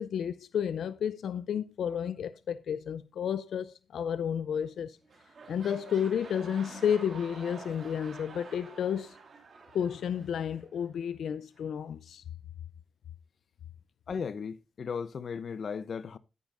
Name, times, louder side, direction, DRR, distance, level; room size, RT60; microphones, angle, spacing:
voice 1, 0.0-5.0 5.5-9.2 9.7-12.2, left 8 dB, 85° left, 0.5 m, -31 dB
sound 1, 4.5-4.8 5.0-10.9 11.6-11.7, right 4 dB, 50° right, 2.6 m, -49 dB
voice 2, 14.1-16.2, left 6 dB, 55° left, 0.8 m, -36 dB
14.0 x 9.4 x 2.6 m
wide cardioid pair, 125°, 0 cm